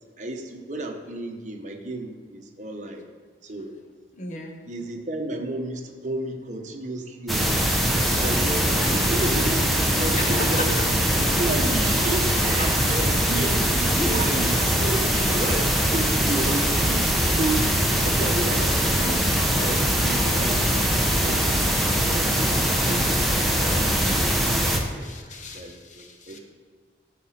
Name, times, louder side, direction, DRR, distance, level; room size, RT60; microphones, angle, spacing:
voice 1, 0.2-3.0 3.4-3.7 4.7-10.7 11.2-17.0 17.4-17.7 18.0-20.8 21.2-23.7 24.8-25.1 25.5-26.4, right 2 dB, 45° right, 2 dB, 1.2 m, -32 dB
voice 2, 4.1-4.5 8.8-9.0 10.1-10.8 12.4-12.7 24.0-26.4, left 2 dB, 45° left, 4 dB, 1.1 m, -38 dB
sound 1, 7.3-24.8, equal, ahead, 1.0 m, -22 dB
13.5 x 5.0 x 5.9 m, 1.5 s
head